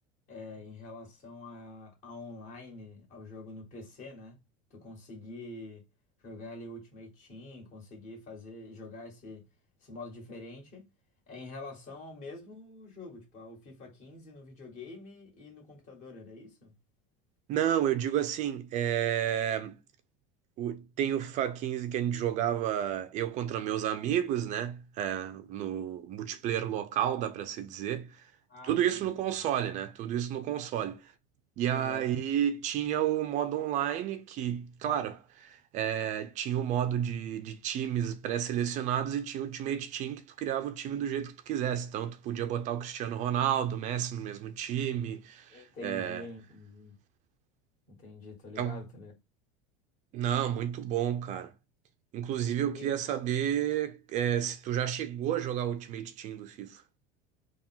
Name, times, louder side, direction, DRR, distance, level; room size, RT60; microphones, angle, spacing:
voice 1, 0.3-4.4 4.7-5.8 6.2-9.5 9.8-10.9 11.3-16.7 28.5-29.1 31.7-32.1 45.5-47.0 47.9-49.1 52.8-53.0, left 2 dB, 45° left, 2.0 m, -46 dB
voice 2, 17.5-19.8 20.6-28.2 28.6-31.1 31.6-46.2 48.6-48.8 50.1-51.5 52.1-56.8, right 10 dB, 45° right, 0.5 m, -31 dB
3.6 x 2.3 x 4.3 m
supercardioid pair, 120°, 17 cm